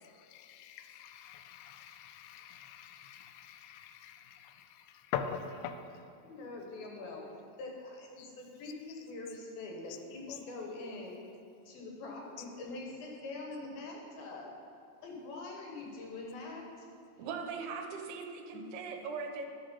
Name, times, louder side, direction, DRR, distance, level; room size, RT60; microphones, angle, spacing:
voice 1, 0.3-4.5 5.1-5.8 8.2-8.3, left 8 dB, 85° left, 8 dB, 2.9 m, -42 dB
voice 2, 6.2-7.2 7.6-11.2 11.7-14.5 15.0-16.9 18.5-18.6, left 2 dB, 70° left, -1 dB, 2.6 m, -44 dB
voice 3, 17.2-19.5, right 5 dB, 75° right, 3 dB, 2.4 m, -40 dB
12.5 x 4.9 x 5.4 m, 2.4 s
omnidirectional pair, 5.1 m